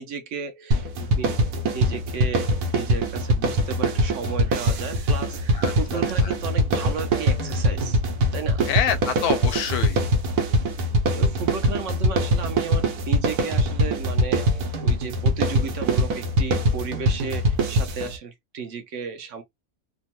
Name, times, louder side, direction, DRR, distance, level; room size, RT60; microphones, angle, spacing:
voice 1, 0.0-8.0 8.3-8.7 11.1-19.4, right 6 dB, 65° right, 0.8 m, -34 dB
sound 1, 0.7-18.2, right 1 dB, 90° right, 1.2 m, -23 dB
voice 2, 5.5-6.0 8.7-10.0, left 8 dB, 90° left, 1.1 m, -26 dB
2.9 x 2.2 x 2.8 m
omnidirectional pair, 1.6 m